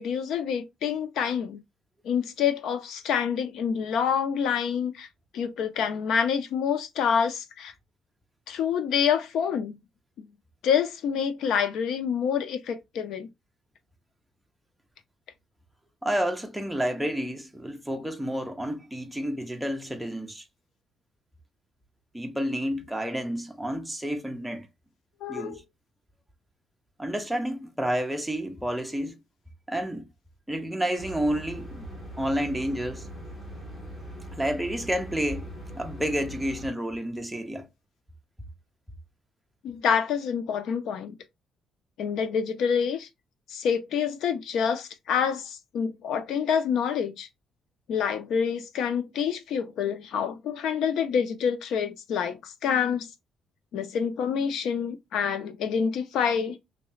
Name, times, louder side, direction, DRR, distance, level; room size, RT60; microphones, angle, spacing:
voice 1, 0.0-1.6 2.0-5.1 5.3-7.7 8.5-9.8 10.6-13.3 25.2-25.6 39.6-41.2 42.0-43.1 43.5-47.3 47.9-53.1 53.7-56.6, left 7 dB, 70° left, 0.6 m, -27 dB
voice 2, 16.0-20.4 22.1-24.7 25.3-25.6 27.0-29.2 29.7-30.1 30.5-31.9 32.2-33.1 34.4-35.5 35.7-37.7, equal, ahead, 0.6 m, -30 dB
sound 1, 31.0-36.7, equal, 15° left, 1.5 m, -41 dB
3.2 x 2.9 x 3.1 m
cardioid pair, 140°, 0 cm